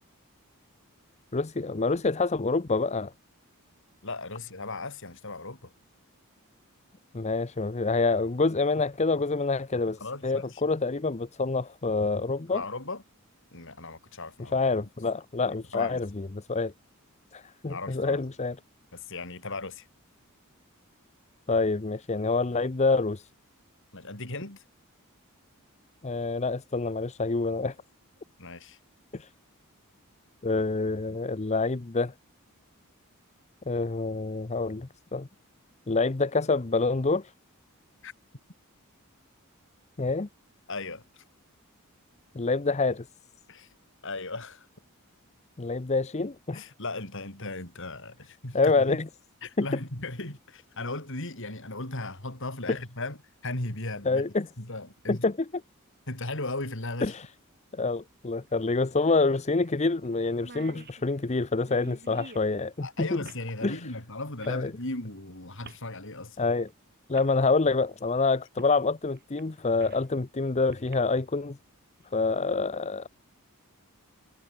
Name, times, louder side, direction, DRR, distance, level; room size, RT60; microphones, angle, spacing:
voice 1, 1.3-3.1 7.1-12.6 14.5-16.7 17.3-18.6 21.5-23.3 26.0-27.8 29.1-29.3 30.4-32.1 33.7-35.3 35.9-37.3 40.0-40.3 42.3-43.1 45.6-46.6 48.5-49.1 49.6-49.7 52.7-52.8 54.0-54.5 55.1-55.5 57.0-57.3 57.7-63.2 63.6-63.8 64.5-64.7 66.4-66.7 67.1-71.6 72.1-73.1, left 3 dB, 30° left, 0.7 m, -27 dB
voice 2, 4.0-5.7 10.0-10.6 12.5-13.0 13.5-14.6 15.7-16.0 17.7-18.2 18.9-19.9 23.9-24.6 28.4-28.8 38.0-38.1 40.7-41.2 43.5-43.7 44.0-44.7 46.5-49.0 49.4-53.2 53.4-54.3 54.6-55.2 56.1-57.1 62.8-66.5, left 2 dB, 60° left, 4.6 m, -37 dB
sound 1, 56.6-56.7 58.5-58.6 58.9-59.0 59.6-59.8 60.0-60.1 60.3-62.5 63.2-63.5 64.4-64.6 65.6-65.9 66.7-66.8 67.1-67.3 68.6-68.8 69.2-70.1 70.7-70.9, right 3 dB, 45° right, 6.5 m, -48 dB
head